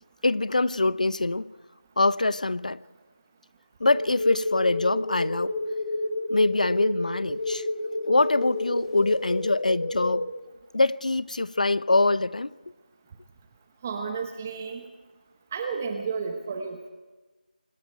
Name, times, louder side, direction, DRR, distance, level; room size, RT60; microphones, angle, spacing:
voice 1, 0.2-1.5 2.0-2.8 3.8-5.5 6.3-7.7 8.1-10.3 10.7-12.5, left 2 dB, 55° left, 0.8 m, -24 dB
sound 1, 3.8-10.2, left 2 dB, 40° left, 3.2 m, -30 dB
voice 2, 13.8-14.9 15.5-16.9, right 5 dB, 15° right, 1.0 m, -32 dB
25.5 x 24.0 x 4.6 m
figure-of-eight pair, 175°, 5 cm